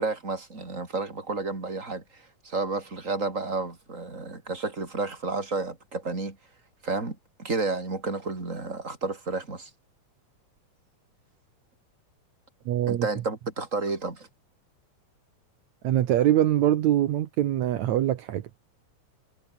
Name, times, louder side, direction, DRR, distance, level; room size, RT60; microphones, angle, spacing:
voice 1, 0.0-6.4 6.8-9.7 12.9-14.3, right 3 dB, 25° right, 4.5 m, -31 dB
voice 2, 12.7-13.1 15.8-18.5, right 12 dB, 70° right, 2.5 m, -23 dB
omnidirectional pair, 3.4 m